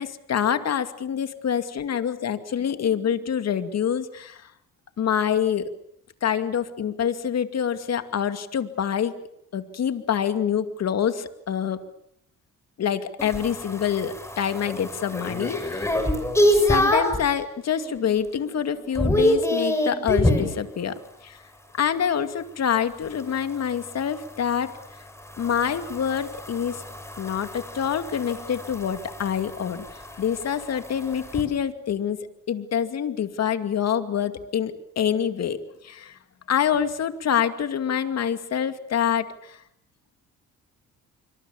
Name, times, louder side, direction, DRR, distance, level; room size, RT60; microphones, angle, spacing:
voice 1, 0.0-4.5 5.0-5.7 6.2-9.1 9.5-11.8 12.8-16.0 16.6-21.4 21.7-24.7 25.4-26.8 27.2-29.8 30.2-32.2 32.5-35.6 35.8-36.2 36.5-39.6, left 8 dB, 55° left, 10 dB, 2.4 m, -26 dB
sound 1, 13.2-17.3 17.8-18.2 18.4-20.5 23.0-31.4, left 1 dB, 10° left, 6.2 m, -26 dB
26.5 x 24.5 x 7.1 m, 0.71 s
cardioid pair, 90°, 30 cm